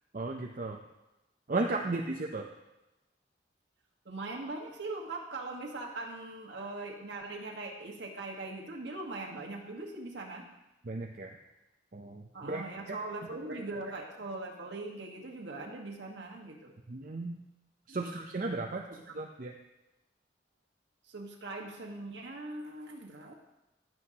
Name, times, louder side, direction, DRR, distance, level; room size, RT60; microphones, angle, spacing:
voice 1, 0.1-0.8 1.5-2.5 10.8-11.4 11.9-13.0 16.9-17.4 17.9-18.8 19.1-19.5, right 2 dB, 45° right, 2 dB, 0.6 m, -35 dB
voice 2, 4.0-10.4 12.3-16.7 17.9-18.2 18.9-19.0 21.1-23.3, right 2 dB, 80° right, 0 dB, 1.5 m, -41 dB
15.0 x 7.9 x 2.9 m, 0.94 s
head